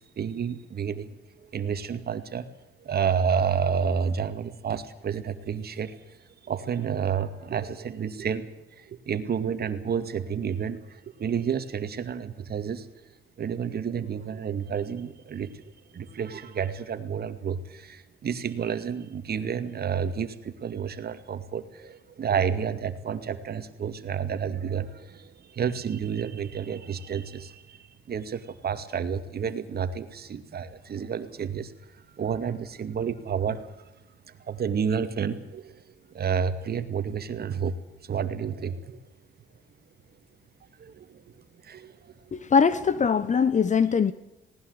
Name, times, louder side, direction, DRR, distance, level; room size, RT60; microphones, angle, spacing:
voice 1, 0.0-2.5 2.8-6.0 6.4-8.5 8.8-12.9 13.4-15.6 15.9-31.7 32.1-33.6 34.5-35.8 36.1-37.7 38.0-39.0 40.8-41.2 41.6-42.1, right 7 dB, 50° right, 11 dB, 2.2 m, -30 dB
voice 2, 42.3-44.1, left 6 dB, 40° left, 15 dB, 1.1 m, -22 dB
19.5 x 19.0 x 8.1 m, 0.96 s
cardioid pair, 90°, 20 cm